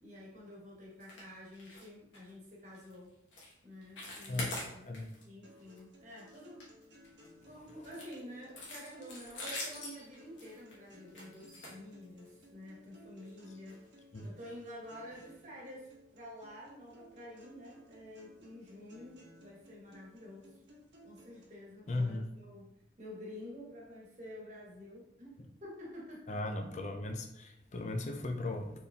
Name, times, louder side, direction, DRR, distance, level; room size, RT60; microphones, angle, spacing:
voice 1, 0.0-3.1 3.6-6.6 6.9-7.0 7.4-13.8 14.2-20.6 21.0-22.6 23.0-26.4, left 1 dB, 40° right, -4 dB, 1.3 m, -49 dB
sound 1, 1.0-1.3 1.5-1.9 2.1-2.3 2.7-2.9 3.3-3.5 3.8-5.2 5.6-5.8 6.2-7.3 7.8-12.4 13.2-13.3 13.7-13.8 14.2-14.3, left 2 dB, 90° left, 1.3 m, -44 dB
sound 2, 5.4-21.4, equal, 75° right, 1.1 m, -59 dB
voice 2, 21.9-22.3 26.3-28.7, left 2 dB, 40° left, 5 dB, 0.5 m, -36 dB
4.4 x 3.5 x 2.8 m, 0.82 s
head